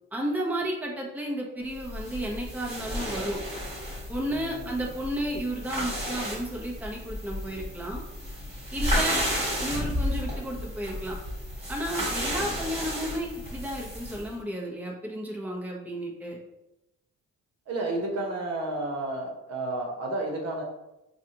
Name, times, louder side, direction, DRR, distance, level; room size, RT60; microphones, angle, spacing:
voice 1, 0.1-3.4 4.1-8.0 8.7-9.3 9.6-11.2 11.7-16.4, right 1 dB, 5° right, -2 dB, 0.8 m, -33 dB
sound 1, 1.8-14.3, equal, 20° right, 1.5 m, -32 dB
voice 2, 4.3-4.7 9.0-9.3 12.3-12.5 17.7-20.6, right 2 dB, 55° right, 1 dB, 1.0 m, -32 dB
4.8 x 2.4 x 2.8 m, 0.91 s
cardioid pair, 90°, 30 cm